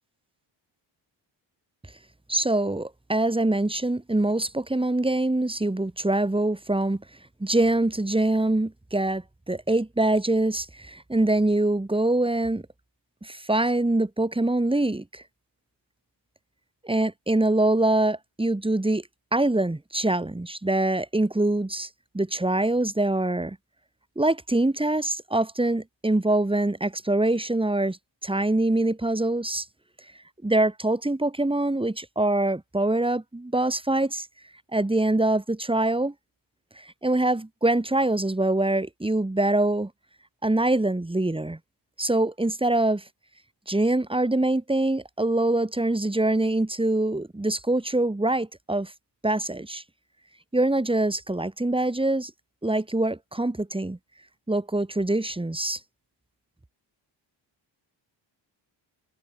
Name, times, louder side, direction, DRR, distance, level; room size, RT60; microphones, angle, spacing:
voice 1, 2.3-7.0 7.4-12.6 13.2-15.2 16.8-19.0 19.3-21.9 22.1-23.6 24.2-28.0 28.2-29.7 30.4-34.3 34.7-36.1 36.8-39.9 40.4-41.6 42.0-43.0 43.7-48.9 49.2-49.8 50.5-52.3 52.6-54.0 54.5-55.8, right 2 dB, 10° right, 2.9 m, -24 dB
cardioid pair, 90°, 46 cm